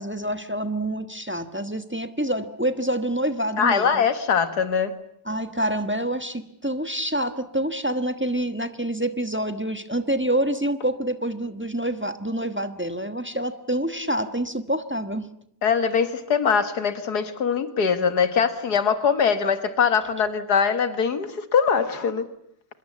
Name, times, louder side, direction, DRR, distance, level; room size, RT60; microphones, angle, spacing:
voice 1, 0.0-4.0 5.3-15.3, right 1 dB, 10° right, 9 dB, 1.2 m, -27 dB
voice 2, 3.6-4.9 15.6-22.3, left 6 dB, 75° left, 10 dB, 2.0 m, -22 dB
25.5 x 22.0 x 8.4 m, 0.71 s
omnidirectional pair, 1.7 m